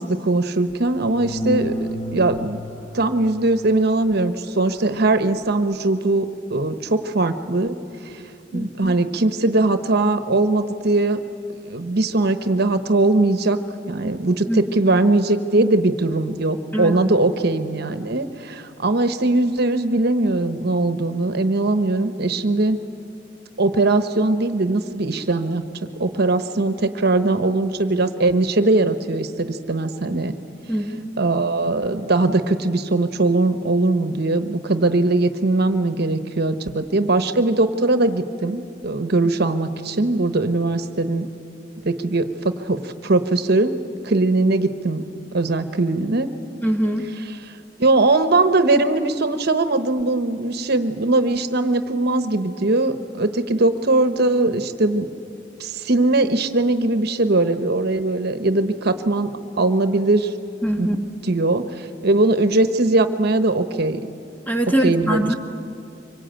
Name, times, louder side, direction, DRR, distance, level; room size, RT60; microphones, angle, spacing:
voice 1, 0.0-2.6 2.9-7.8 8.5-11.2 11.7-13.6 13.9-22.8 23.6-25.6 26.0-30.3 31.2-41.3 41.8-43.7 44.0-45.0 45.3-46.3 47.0-47.5 47.8-55.1 55.6-59.3 59.6-60.3 60.8-61.6 62.0-64.1 64.7-65.3, right 2 dB, 60° right, 10 dB, 1.0 m, -20 dB
sound 1, 1.0-3.1 5.7-5.8, equal, 35° left, 1.5 m, -29 dB
voice 2, 8.5-9.0 14.5-14.6 16.7-17.1 30.7-31.2 46.6-47.1 60.6-61.1 64.5-65.3, right 1 dB, 10° left, 3 dB, 1.8 m, -23 dB
25.0 x 23.5 x 9.1 m, 2.6 s
head